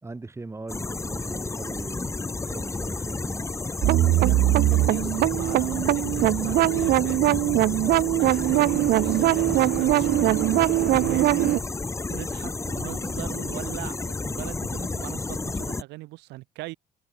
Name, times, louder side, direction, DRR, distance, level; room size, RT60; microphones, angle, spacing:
voice 1, 0.0-3.5, right 3 dB, 15° right, 3.4 m, -39 dB
sound 1, 0.7-15.8, left 3 dB, 15° left, 1.9 m, -31 dB
sound 2, 3.8-11.6, right 16 dB, 65° right, 0.4 m, -21 dB
voice 2, 4.2-10.3 10.9-11.6 12.1-16.8, right 20 dB, 90° right, 4.2 m, -40 dB
cardioid pair, 110°, 17 cm